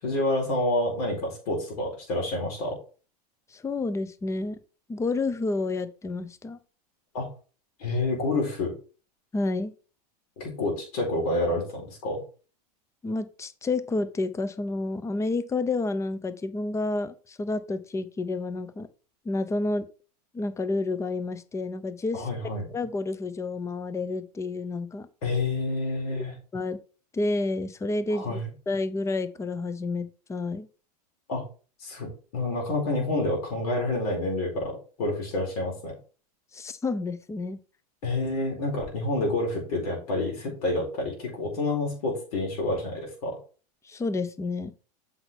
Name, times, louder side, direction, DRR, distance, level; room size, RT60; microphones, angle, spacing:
voice 1, 0.0-2.8 7.1-7.3 7.8-8.7 10.4-12.2 22.1-22.7 25.2-26.3 28.1-28.5 31.3-31.4 31.8-35.9 38.0-43.4, left 2 dB, 65° left, -1 dB, 4.6 m, -28 dB
voice 2, 3.5-4.6 4.9-6.6 9.3-9.7 13.0-18.9 19.2-19.9 20.3-22.3 22.7-25.1 26.5-26.8 27.1-28.4 28.7-30.7 36.5-37.6 43.8-44.7, left 3 dB, 15° left, 13 dB, 0.8 m, -30 dB
7.8 x 5.6 x 4.3 m, 0.37 s
hypercardioid pair, 105°, 20 cm